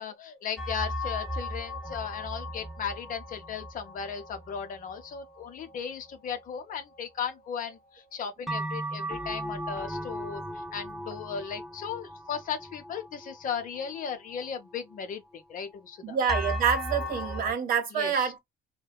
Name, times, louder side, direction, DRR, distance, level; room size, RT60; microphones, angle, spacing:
voice 1, 0.0-10.4 10.7-16.2 17.9-18.3, left 7 dB, 55° left, 0.7 m, -36 dB
sound 1, 0.6-7.4 7.7-7.8 8.5-14.4 14.9-15.0 16.3-17.5, equal, ahead, 0.6 m, -36 dB
voice 2, 16.0-18.4, right 7 dB, 60° right, 0.8 m, -27 dB
2.7 x 2.1 x 2.2 m
cardioid pair, 110°, 17 cm